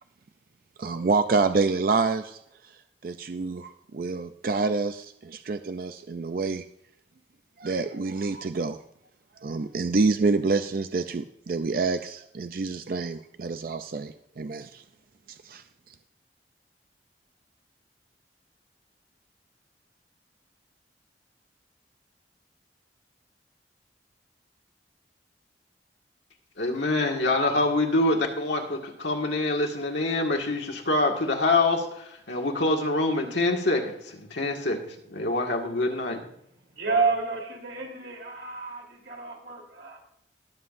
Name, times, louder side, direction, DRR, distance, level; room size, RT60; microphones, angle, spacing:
voice 1, 0.8-2.4 3.0-6.6 7.6-8.8 9.4-14.8 15.4-15.6, right 3 dB, 55° right, 9 dB, 0.4 m, -27 dB
voice 2, 26.6-31.9 32.3-36.2, left 2 dB, 90° left, 1 dB, 1.9 m, -25 dB
voice 3, 36.8-40.0, right 4 dB, 85° right, 0 dB, 3.5 m, -30 dB
20.5 x 7.4 x 2.6 m, 0.75 s
head